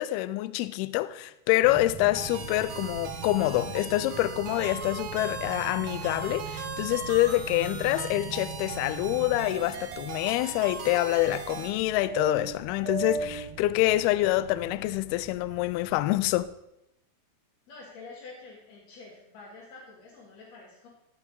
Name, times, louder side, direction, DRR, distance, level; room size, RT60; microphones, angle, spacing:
voice 1, 0.0-16.5, left 16 dB, 85° left, 2.3 m, -26 dB
sound 1, 1.6-16.4, right 5 dB, 85° right, 1.6 m, -40 dB
sound 2, 2.1-11.7, right 5 dB, 70° right, 2.8 m, -39 dB
voice 2, 17.7-20.9, left 3 dB, 50° left, 2.7 m, -47 dB
14.0 x 6.0 x 5.3 m
omnidirectional pair, 4.9 m